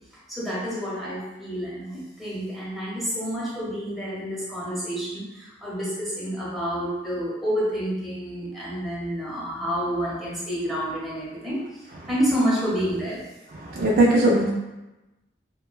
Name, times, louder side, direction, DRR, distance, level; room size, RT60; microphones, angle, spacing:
voice 1, 0.3-11.6 12.1-13.3, equal, ahead, -9 dB, 0.8 m, -29 dB
voice 2, 13.5-14.5, right 1 dB, 55° right, -3 dB, 0.4 m, -19 dB
2.9 x 2.1 x 2.3 m, 1.0 s
head